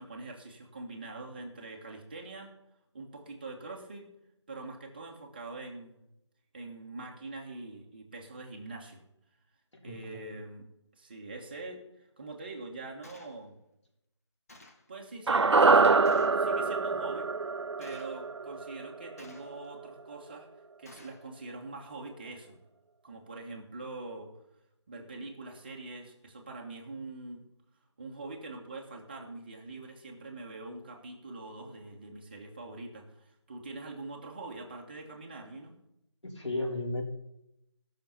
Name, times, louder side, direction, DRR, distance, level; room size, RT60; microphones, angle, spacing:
voice 1, 0.0-2.5 2.9-4.1 4.5-6.0 6.5-9.0 9.8-10.7 10.9-13.6 14.9-17.3 17.8-20.5 20.8-22.6 23.0-24.3 24.9-27.4 28.0-35.7, right 2 dB, 20° right, 1 dB, 1.4 m, -44 dB
voice 2, 9.8-10.2 36.2-37.0, left 2 dB, 75° left, -1 dB, 4.0 m, -34 dB
Gunshot gunfire, 13.0-13.4 14.5-14.9 16.1-16.4 17.8-18.2 19.2-19.7 20.9-21.3, left 2 dB, 30° left, 1.2 m, -54 dB
sound 1, 15.3-19.6 19.8-19.9, right 4 dB, 70° right, 0.4 m, -25 dB
16.5 x 6.5 x 5.7 m, 0.83 s
figure-of-eight pair, 165°, 15 cm